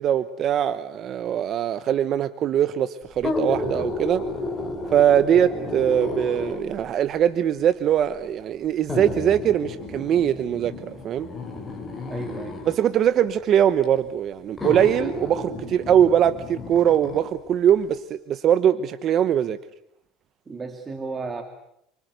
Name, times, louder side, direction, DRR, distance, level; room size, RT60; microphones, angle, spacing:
voice 1, 0.0-4.2 4.9-11.3 12.7-19.6, right 9 dB, 40° right, 12 dB, 1.0 m, -21 dB
sound 1, 3.1-6.8 7.7-7.8 8.9-12.8 13.8-13.9 14.6-17.3 17.7-17.8, left 2 dB, 10° left, 6.2 m, -32 dB
voice 2, 12.1-12.6 20.5-21.4, right 4 dB, 20° right, 6 dB, 2.4 m, -33 dB
29.5 x 24.5 x 8.1 m, 0.75 s
cardioid pair, 140°, 0 cm